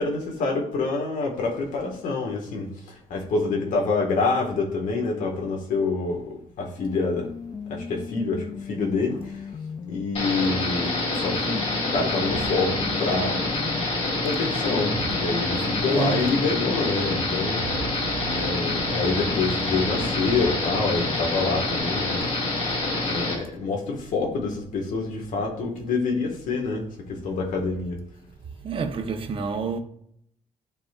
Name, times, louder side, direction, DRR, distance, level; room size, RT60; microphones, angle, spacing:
voice 1, 0.0-2.7 3.1-7.3 7.7-9.3 9.9-11.6 11.9-13.4 14.2-17.7 18.3-22.2 23.1-28.0, left 3 dB, 80° left, 1.7 m, -27 dB
sound 1, 6.8-10.1 10.8-17.8 18.3-21.8, left 5 dB, 25° left, 0.4 m, -37 dB
sound 2, 10.1-23.3, left 2 dB, 50° left, 2.3 m, -27 dB
sound 3, 12.3-14.4 14.9-16.8 17.4-22.5, right 5 dB, 75° right, 0.8 m, -42 dB
voice 2, 15.9-16.3 18.2-18.4 18.8-18.9 28.6-29.8, right 5 dB, 40° right, 0.9 m, -29 dB
12.5 x 4.2 x 2.5 m
cardioid pair, 155°, 13 cm